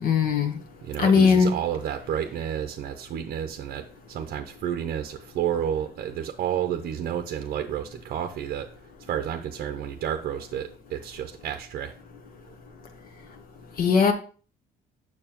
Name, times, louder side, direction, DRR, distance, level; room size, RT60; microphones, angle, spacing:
voice 1, 0.0-0.6 1.0-1.5 13.8-14.1, left 6 dB, 60° left, 5 dB, 1.1 m, -19 dB
voice 2, 0.8-8.7 9.0-11.9, right 9 dB, 60° right, 7 dB, 0.6 m, -31 dB
6.9 x 6.3 x 2.9 m, 0.40 s
cardioid pair, 110°, 17 cm